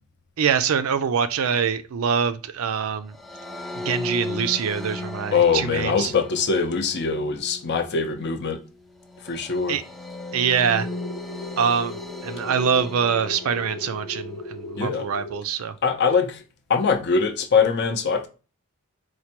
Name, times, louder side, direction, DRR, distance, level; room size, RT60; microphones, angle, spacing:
voice 1, 0.4-3.1 3.8-6.1 9.7-9.8 10.3-10.9 11.6-15.7, right 7 dB, 75° right, 0.4 m, -24 dB
sound 1, 3.1-14.5, left 2 dB, ahead, 0.3 m, -37 dB
voice 2, 5.3-8.6 9.2-9.8 14.8-15.1 15.8-16.4 16.7-18.3, left 5 dB, 50° left, 0.5 m, -22 dB
sound 2, 10.4-15.4, left 2 dB, 85° left, 0.9 m, -37 dB
4.4 x 2.2 x 2.8 m
head